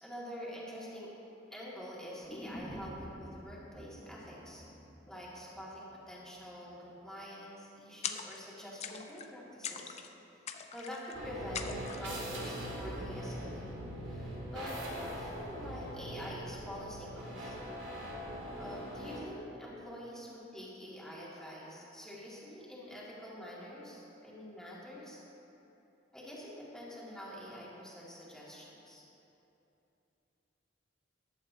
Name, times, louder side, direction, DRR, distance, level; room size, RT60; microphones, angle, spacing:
voice 1, 0.0-1.1 1.5-4.6 5.1-10.0 10.7-11.7 12.0-13.7 14.0-17.9 18.6-25.2 26.1-29.0, equal, 5° left, -7 dB, 2.3 m, -46 dB
sound 1, 2.2-6.3 6.6-6.7, equal, 20° left, 1.1 m, -49 dB
sound 2, 8.0-8.5 8.8-9.3 9.6-10.1 10.5-11.1 11.5-12.2, left 7 dB, 35° left, 0.5 m, -41 dB
sound 3, 11.1-19.2, equal, 85° right, 2.8 m, -41 dB
14.0 x 11.5 x 2.9 m, 2.9 s
head